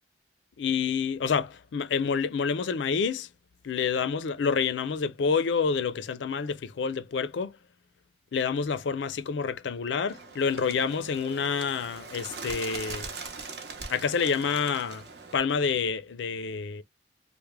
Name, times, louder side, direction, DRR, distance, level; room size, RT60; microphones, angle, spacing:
voice 1, 0.6-3.3 3.6-7.6 8.3-13.1 13.9-15.0 15.3-16.8, left 5 dB, 80° left, 0.4 m, -28 dB
Bird, 10.1-15.4, right 4 dB, 60° right, 0.8 m, -41 dB
3.4 x 2.1 x 3.1 m
head